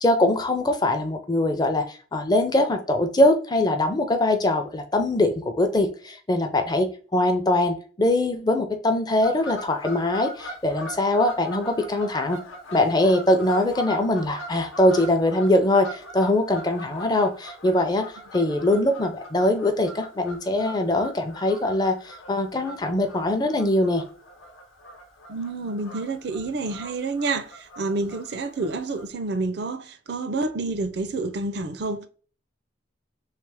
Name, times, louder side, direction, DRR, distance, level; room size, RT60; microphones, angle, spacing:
voice 1, 0.0-12.4 12.7-24.0, left 1 dB, 20° left, 0.5 m, -22 dB
Fowl / Bird vocalization bird call bird song, 9.2-29.1, equal, 85° left, 0.9 m, -42 dB
voice 2, 25.3-32.1, right 3 dB, 55° right, 0.4 m, -29 dB
3.3 x 3.2 x 3.3 m
head